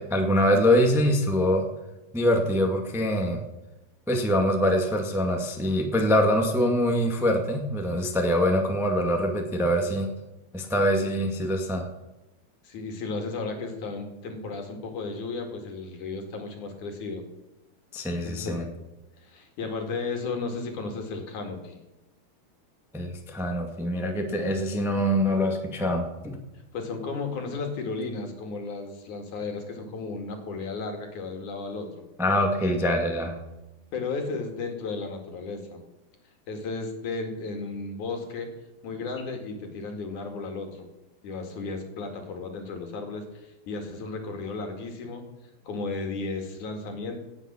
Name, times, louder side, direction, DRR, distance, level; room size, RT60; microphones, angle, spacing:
voice 1, 0.1-1.6 2.1-3.4 4.1-10.1 10.5-11.8 17.9-18.6 22.9-26.4 32.2-33.4, equal, 5° right, 2 dB, 0.4 m, -24 dB
voice 2, 12.6-17.2 18.2-18.6 19.2-21.8 26.7-31.9 33.9-35.8 36.5-38.5 38.8-40.9 41.2-45.2 45.6-47.2, left 3 dB, 60° left, 4 dB, 3.4 m, -34 dB
17.5 x 7.5 x 7.2 m, 1.0 s
omnidirectional pair, 4.2 m